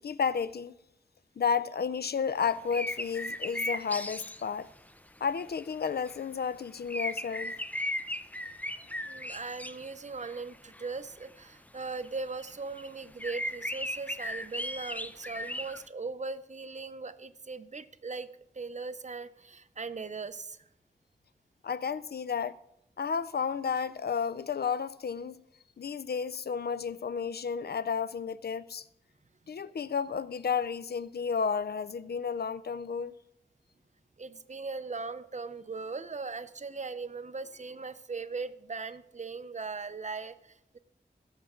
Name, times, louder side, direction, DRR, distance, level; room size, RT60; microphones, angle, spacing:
voice 1, 0.0-0.7 1.4-4.7 5.2-7.5 21.6-22.6 23.0-25.4 25.8-28.9 29.5-33.1, left 6 dB, 80° left, 0.4 m, -32 dB
sound 1, 2.5-4.4 6.0-6.2 6.9-9.9 10.2-10.9 11.2-11.3 12.0-12.1 12.4-12.5 12.8-12.9 13.2-15.8, left 1 dB, 10° left, 0.5 m, -36 dB
voice 2, 8.8-18.3 18.5-20.6 34.2-40.8, right 4 dB, 45° right, 0.6 m, -39 dB
17.5 x 7.3 x 3.7 m
wide cardioid pair, 75°, 16 cm